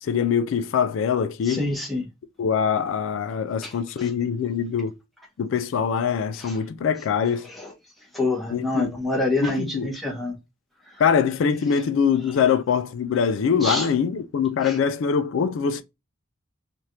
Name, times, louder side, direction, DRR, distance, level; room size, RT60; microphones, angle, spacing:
voice 1, 0.0-1.7 2.4-4.9 5.4-7.5 8.5-8.9 9.4-9.9 11.0-15.8, left 7 dB, 75° left, 0.3 m, -23 dB
voice 2, 1.5-2.0 3.6-3.7 6.4-6.5 7.6-7.7 8.1-10.3 13.6-13.9 14.6-14.7, left 2 dB, ahead, 1.0 m, -26 dB
3.3 x 2.4 x 2.8 m
head